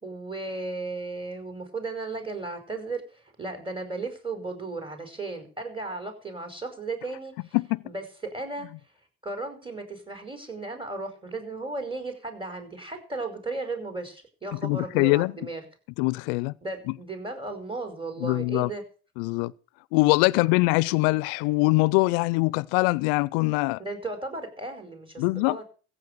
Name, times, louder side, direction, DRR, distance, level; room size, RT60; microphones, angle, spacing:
voice 1, 0.0-7.6 7.8-8.7 9.2-15.6 16.6-18.8 20.3-20.5 23.8-25.6, right 3 dB, 10° right, 5.2 m, -35 dB
voice 2, 14.6-15.3 16.0-16.5 18.2-18.7 19.2-19.5 19.9-23.8 25.2-25.6, left 25 dB, 80° left, 0.6 m, -23 dB
15.0 x 8.5 x 6.7 m
hypercardioid pair, 60°, 43 cm